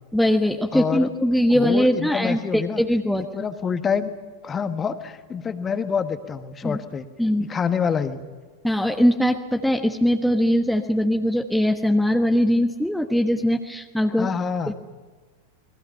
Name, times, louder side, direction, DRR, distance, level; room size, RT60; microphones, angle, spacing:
voice 1, 0.1-3.2 6.6-6.8 7.2-7.5 8.6-14.3, equal, ahead, 4 dB, 1.2 m, -21 dB
voice 2, 0.7-1.1 1.5-2.8 3.2-4.1 4.4-7.1 7.5-8.2 14.2-14.7, left 6 dB, 20° left, 9 dB, 1.5 m, -26 dB
28.5 x 22.0 x 5.7 m, 1.4 s
figure-of-eight pair, 90°, 0 cm